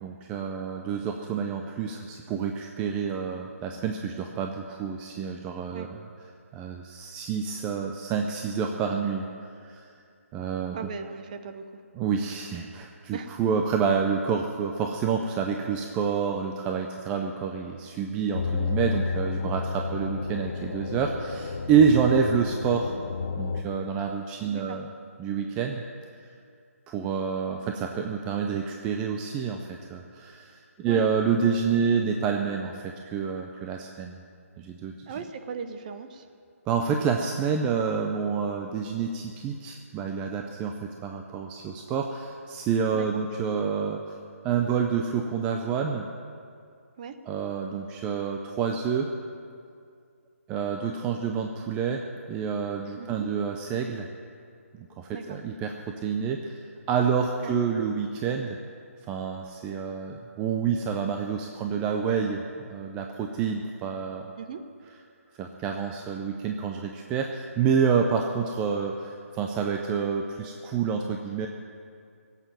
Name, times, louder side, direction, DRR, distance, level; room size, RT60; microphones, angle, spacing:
voice 1, 0.0-6.0 6.5-9.9 10.3-10.8 11.9-22.9 23.4-24.9 25.2-25.8 26.2-26.3 26.9-34.2 34.6-35.2 36.7-44.2 44.4-46.1 47.3-49.1 50.5-54.1 54.8-58.6 59.1-64.3 65.3-71.5, right 6 dB, 15° right, 3 dB, 0.5 m, -28 dB
voice 2, 10.7-11.8 13.1-13.3 19.4-19.5 24.5-24.8 30.8-31.0 35.1-36.3 42.9-43.1 47.0-47.1 53.0-53.3 55.1-55.4 57.4-57.5 64.4-64.6, right 6 dB, 30° right, 8 dB, 0.9 m, -38 dB
sound 1, 18.3-23.6, left 4 dB, 50° left, 1.0 m, -31 dB
17.0 x 8.3 x 9.0 m, 2.3 s
figure-of-eight pair, 155°, 8 cm